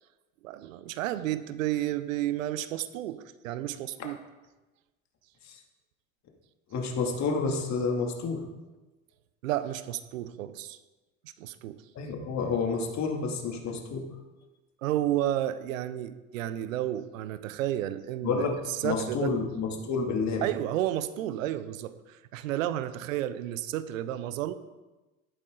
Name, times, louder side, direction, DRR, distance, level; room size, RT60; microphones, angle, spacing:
voice 1, 0.4-4.2 9.4-10.8 11.4-11.8 14.8-19.3 20.4-24.5, right 13 dB, 75° right, 13 dB, 0.9 m, -32 dB
voice 2, 6.7-8.5 11.9-14.1 18.2-20.5, left 4 dB, 40° left, 2 dB, 2.6 m, -29 dB
13.0 x 11.5 x 3.9 m, 1.1 s
hypercardioid pair, 75°, 40 cm